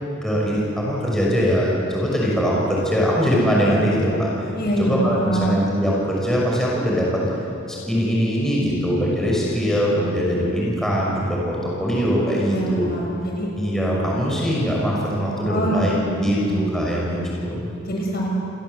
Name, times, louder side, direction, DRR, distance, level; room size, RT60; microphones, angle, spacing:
voice 1, 0.2-4.3 4.8-7.2 7.7-12.9 13.6-15.9 16.2-17.7, equal, ahead, -4 dB, 5.9 m, -22 dB
voice 2, 4.5-5.5 12.4-13.5 15.5-16.1 16.3-16.6 17.8-18.3, right 1 dB, 50° left, -2 dB, 7.2 m, -25 dB
29.0 x 23.0 x 8.1 m, 2.7 s
head